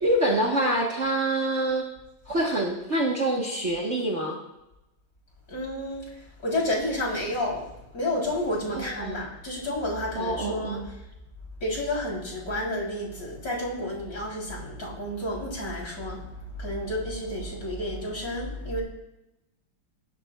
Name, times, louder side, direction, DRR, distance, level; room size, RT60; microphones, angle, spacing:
voice 1, 0.0-1.8 2.3-4.4 8.8-9.3 10.1-10.9, right 1 dB, 40° right, -1 dB, 1.4 m, -26 dB
voice 2, 5.5-11.0 11.6-18.8, left 1 dB, 45° left, -2 dB, 3.9 m, -31 dB
19.5 x 11.0 x 2.4 m, 0.91 s
omnidirectional pair, 2.3 m